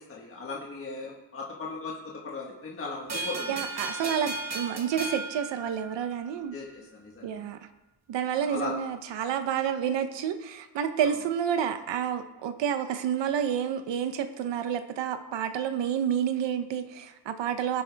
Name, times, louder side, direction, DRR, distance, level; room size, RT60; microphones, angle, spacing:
voice 1, 0.0-3.6 6.5-7.3 8.4-8.7, left 3 dB, 30° left, -2 dB, 1.6 m, -37 dB
sound 1, 3.1-6.3, right 3 dB, 40° right, 2.1 m, -35 dB
voice 2, 3.5-6.5 7.2-7.6 8.1-17.8, right 8 dB, 85° right, 8 dB, 1.0 m, -29 dB
20.0 x 8.5 x 3.5 m, 1.0 s
wide cardioid pair, 155°, 43 cm